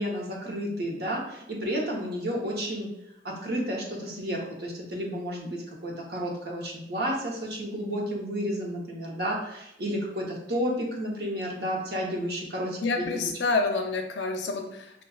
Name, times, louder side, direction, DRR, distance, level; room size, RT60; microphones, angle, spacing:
voice 1, 0.0-2.9 3.2-13.3, equal, 55° right, -1 dB, 0.9 m, -31 dB
voice 2, 12.8-15.0, left 3 dB, 75° left, 4 dB, 0.5 m, -28 dB
5.9 x 2.3 x 2.3 m, 0.84 s
head